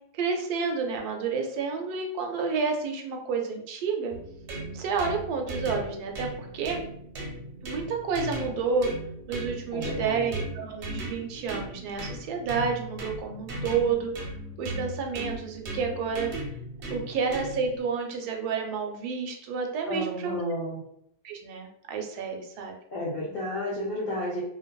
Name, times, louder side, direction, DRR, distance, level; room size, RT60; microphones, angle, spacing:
voice 1, 0.1-4.1 4.7-6.8 7.6-8.9 9.3-14.3 14.6-16.3 16.9-20.4 21.2-22.7, right 5 dB, 80° right, 3 dB, 1.1 m, -30 dB
sound 1, 4.1-17.8, right 1 dB, 55° right, 0.8 m, -37 dB
voice 2, 9.7-10.5 19.9-20.8 22.9-24.4, left 1 dB, 65° left, -5 dB, 0.5 m, -32 dB
2.6 x 2.5 x 2.2 m, 0.72 s
omnidirectional pair, 1.7 m